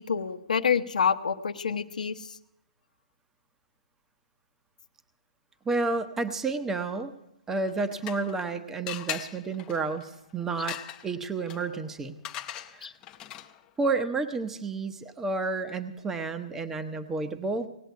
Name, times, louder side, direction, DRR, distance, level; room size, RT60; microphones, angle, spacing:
voice 1, 0.0-2.4 12.8-12.9, left 6 dB, 85° left, 6 dB, 0.9 m, -27 dB
voice 2, 5.6-7.1 7.5-10.8 11.0-12.2 12.7-12.9 13.8-17.7, right 3 dB, 10° right, 10 dB, 0.8 m, -30 dB
sound 1, 7.6-8.5 8.9-13.7, left 12 dB, 20° left, 0.6 m, -40 dB
18.5 x 7.9 x 9.3 m, 0.84 s
hypercardioid pair, 155°, 4 cm